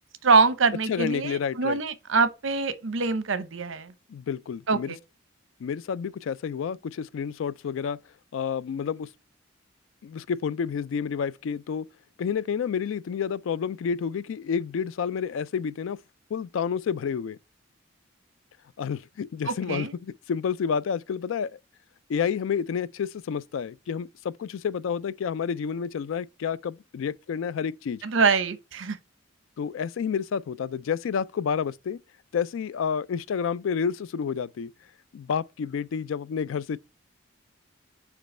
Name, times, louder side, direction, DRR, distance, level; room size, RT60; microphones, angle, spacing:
voice 1, 0.2-3.9 4.7-5.0 19.5-19.9 28.0-29.0, right 4 dB, 75° right, 0.8 m, -24 dB
voice 2, 0.9-1.8 4.1-4.9 5.6-8.0 8.3-9.1 10.0-11.9 12.2-16.0 16.3-17.4 18.8-21.6 22.1-28.0 29.6-32.0 32.3-34.7 35.1-36.8, left 7 dB, 80° left, 0.3 m, -29 dB
5.3 x 4.9 x 4.2 m
head